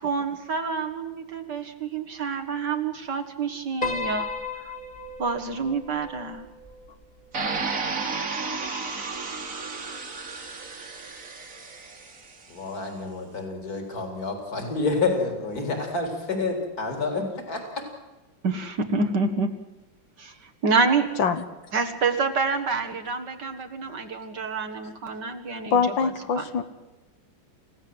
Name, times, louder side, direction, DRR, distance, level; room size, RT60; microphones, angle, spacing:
voice 1, 0.0-4.3 5.2-6.5 18.4-19.5 20.2-20.3 20.6-21.1 21.7-26.1 26.4-26.5, right 4 dB, 60° right, 5 dB, 2.2 m, -27 dB
Piano, 3.8-8.2, left 3 dB, 25° left, 2.3 m, -35 dB
sound 1, 7.3-12.3, right 4 dB, 45° right, 2.3 m, -32 dB
voice 2, 12.5-17.6, left 3 dB, 50° left, 4 dB, 4.6 m, -28 dB
voice 3, 25.7-26.6, left 6 dB, 75° left, 9 dB, 2.2 m, -23 dB
28.0 x 16.5 x 7.9 m, 1.1 s
omnidirectional pair, 2.1 m